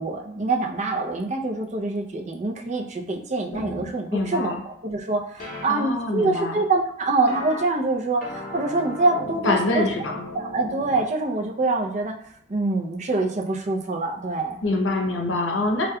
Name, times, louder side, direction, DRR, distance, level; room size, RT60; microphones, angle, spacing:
voice 1, 0.0-9.9 10.3-12.1 12.5-14.6, right 3 dB, 40° right, 2 dB, 0.5 m, -25 dB
sound 1, 3.5-3.9 5.4-5.6 7.3-7.6 8.2-11.0, left 1 dB, 45° left, 0.6 m, -36 dB
voice 2, 4.1-4.6 5.6-6.6 9.4-10.2 14.6-15.9, left 2 dB, 80° left, 2 dB, 0.7 m, -25 dB
5.1 x 2.2 x 2.2 m, 0.71 s
head